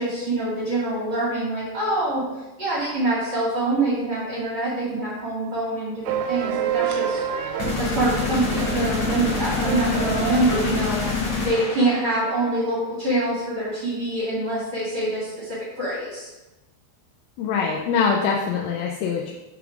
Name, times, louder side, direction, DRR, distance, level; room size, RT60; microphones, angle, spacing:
voice 1, 0.0-2.2 2.6-7.2 7.8-11.0 11.4-16.3, right 2 dB, 75° right, -9 dB, 1.2 m, -25 dB
sound 1, 6.1-11.1, right 9 dB, 90° right, 3.2 m, -29 dB
sound 2, 7.6-12.3, left 4 dB, 65° left, 1.7 m, -26 dB
voice 2, 17.4-19.3, left 5 dB, 85° left, 0 dB, 3.1 m, -23 dB
7.8 x 3.5 x 4.9 m, 1.0 s
omnidirectional pair, 5.6 m